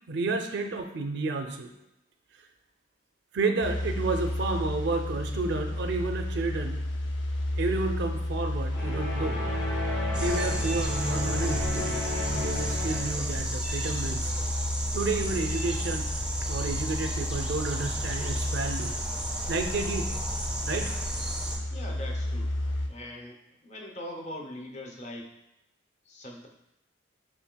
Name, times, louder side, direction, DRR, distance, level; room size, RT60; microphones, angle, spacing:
voice 1, 0.1-1.7 3.3-6.8 7.6-9.4 10.2-12.1 12.3-14.3 14.9-16.0 16.5-18.9 19.5-20.1 20.7-20.9, right 3 dB, 60° right, 6 dB, 0.4 m, -31 dB
sound 1, 3.6-22.9, left 1 dB, 80° left, 0.5 m, -32 dB
sound 2, 8.7-13.3, left 1 dB, 60° left, 1.3 m, -33 dB
sound 3, 10.1-21.6, right 1 dB, 5° right, 0.5 m, -34 dB
voice 2, 21.7-22.5 22.9-23.4 23.6-25.3 26.1-26.5, left 1 dB, 40° left, 1 dB, 0.7 m, -41 dB
6.9 x 3.1 x 2.2 m, 0.88 s
head